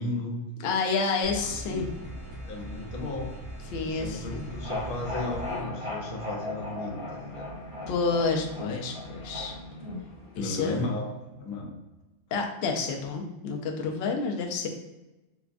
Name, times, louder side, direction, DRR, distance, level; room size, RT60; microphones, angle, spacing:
voice 1, 0.0-0.5 1.4-1.9 2.4-3.4 3.7-7.5 10.3-11.7, left 2 dB, 85° left, 1 dB, 1.1 m, -35 dB
voice 2, 0.6-1.9 3.7-4.5 7.9-9.5 10.4-10.8 12.3-14.7, left 4 dB, 65° left, 1 dB, 0.6 m, -29 dB
sound 1, 1.2-5.6, equal, 60° right, 1.3 m, -40 dB
sound 2, 4.4-10.5, left 1 dB, 30° right, 0.8 m, -37 dB
4.0 x 2.3 x 2.5 m, 1.0 s
omnidirectional pair, 1.5 m